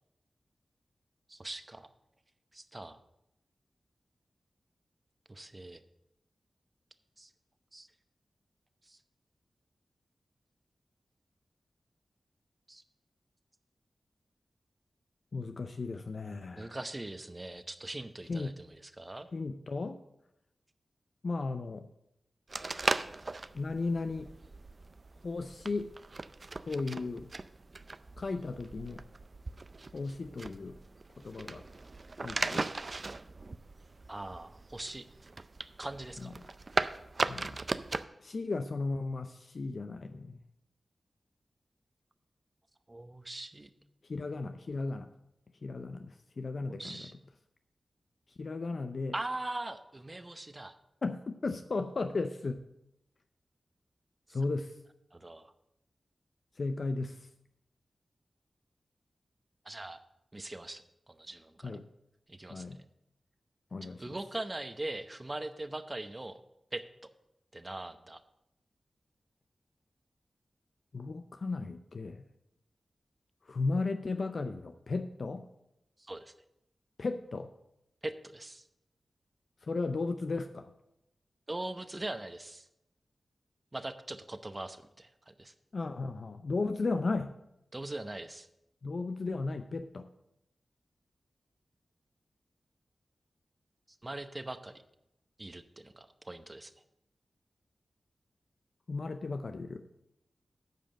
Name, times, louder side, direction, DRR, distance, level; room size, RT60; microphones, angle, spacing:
voice 1, 1.3-1.9 2.5-3.0 5.3-5.8 7.2-7.3 7.7-7.9 8.8-9.0 12.7-12.8 16.5-19.3 34.1-35.1 35.8-36.3 42.9-43.7 46.7-47.1 49.1-50.8 55.1-55.5 59.6-60.0 60.3-60.8 61.1-61.8 62.3-62.7 64.0-66.4 66.7-66.8 67.5-68.2 76.0-76.3 78.0-78.6 81.5-82.7 83.7-85.5 87.7-88.5 94.0-94.8 95.4-96.7, right 2 dB, 30° right, 10 dB, 0.8 m, -41 dB
voice 2, 15.3-16.8 18.3-18.6 19.3-20.0 21.2-21.9 23.5-24.3 25.2-25.9 26.6-27.3 28.2-29.0 29.9-30.8 31.2-31.6 32.2-32.7 36.2-36.3 37.3-37.6 38.2-40.4 44.0-45.1 45.6-47.1 48.4-49.1 51.0-52.6 54.3-54.8 56.6-57.3 61.6-61.9 62.5-62.8 63.7-64.2 70.9-72.3 73.4-75.5 77.0-77.5 79.6-80.7 85.7-87.3 88.8-90.1 98.9-99.8, left 3 dB, 65° left, 8 dB, 0.5 m, -35 dB
sound 1, 22.5-38.1, right 3 dB, 50° right, 0.4 m, -38 dB
9.2 x 5.1 x 7.5 m, 0.85 s
cardioid pair, 50°, 0 cm